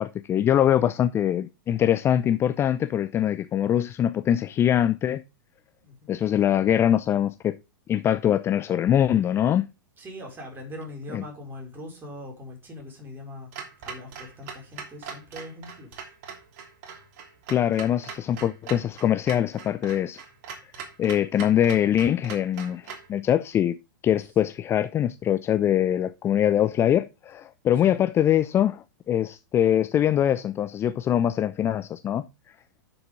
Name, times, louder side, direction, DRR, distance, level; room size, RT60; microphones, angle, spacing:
voice 1, 0.0-5.2 6.1-7.6 7.9-9.6 11.1-11.2 17.5-20.2 21.0-23.8 24.0-32.2, left 10 dB, 20° left, 0.5 m, -23 dB
voice 2, 5.8-6.1 10.0-13.5 13.8-16.0 27.9-28.0, left 1 dB, 20° right, 5.0 m, -41 dB
Clock, 13.5-23.1, right 6 dB, 50° right, 2.9 m, -41 dB
10.5 x 7.0 x 3.5 m
figure-of-eight pair, 100°, 11 cm